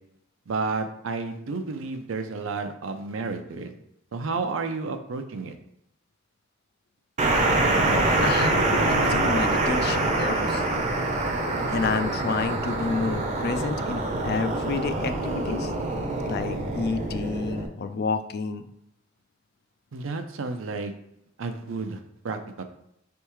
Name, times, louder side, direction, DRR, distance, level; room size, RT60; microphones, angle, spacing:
voice 1, 0.5-3.7 4.1-5.6 19.9-20.9 21.4-22.6, right 4 dB, 85° right, 7 dB, 0.5 m, -31 dB
sound 1, 7.2-17.7, right 2 dB, 35° right, 0.6 m, -25 dB
voice 2, 7.7-10.6 11.7-15.7 16.3-18.7, left 4 dB, 50° left, 9 dB, 0.4 m, -30 dB
4.4 x 3.4 x 3.0 m, 0.78 s
head